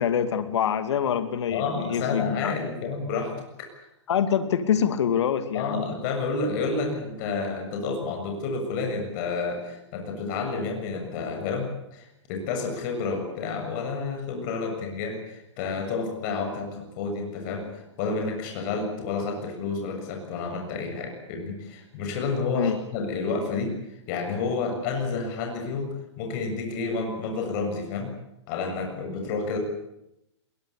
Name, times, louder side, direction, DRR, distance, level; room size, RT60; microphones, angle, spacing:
voice 1, 0.0-2.5 4.1-5.9 22.5-22.8, left 8 dB, 70° left, 10 dB, 2.5 m, -25 dB
voice 2, 1.5-3.3 5.5-23.7 24.1-28.1 28.5-29.6, left 4 dB, 45° left, 3 dB, 7.2 m, -30 dB
22.0 x 22.0 x 8.6 m, 0.85 s
hypercardioid pair, 135°, 15 cm